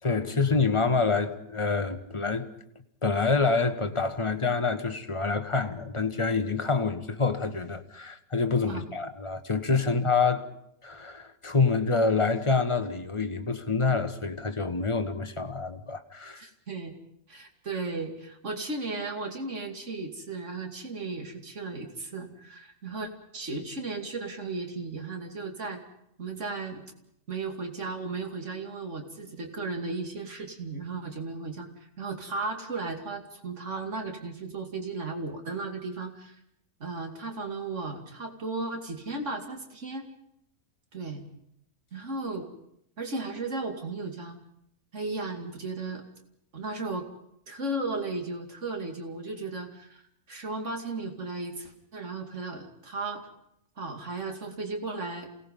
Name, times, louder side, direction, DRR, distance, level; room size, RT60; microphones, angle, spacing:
voice 1, 0.0-2.5 3.0-10.5 10.8-16.4, left 4 dB, 20° left, 1.3 m, -27 dB
voice 2, 16.4-17.0 17.3-25.8 26.2-26.8 27.3-31.7 32.0-36.3 36.8-40.1 40.9-41.2 41.9-42.5 43.0-44.4 44.9-46.0 46.5-47.1 47.5-50.0 50.3-53.3 53.8-55.3, right 3 dB, 55° right, 2.9 m, -35 dB
28.5 x 18.5 x 5.4 m
omnidirectional pair, 1.5 m